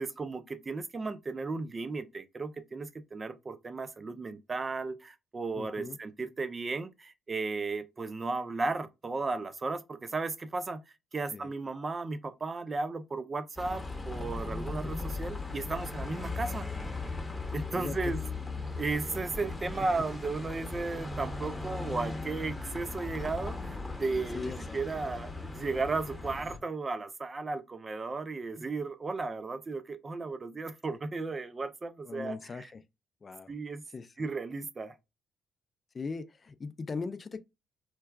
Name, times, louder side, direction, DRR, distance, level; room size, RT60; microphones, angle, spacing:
voice 1, 0.0-10.8 11.1-16.7 17.5-18.2 18.8-32.4 33.5-33.8 34.2-34.9, right 3 dB, 30° right, 0.5 m, -35 dB
voice 2, 5.6-6.0 11.3-11.5 14.8-14.9 17.7-18.1 19.8-19.9 24.3-24.8 32.1-32.8 33.2-33.5 33.9-34.3 35.9-37.4, left 4 dB, 35° left, 0.4 m, -39 dB
Bus, 13.6-26.6, left 3 dB, 10° left, 0.9 m, -38 dB
4.5 x 2.2 x 2.2 m
cardioid pair, 90°, 0 cm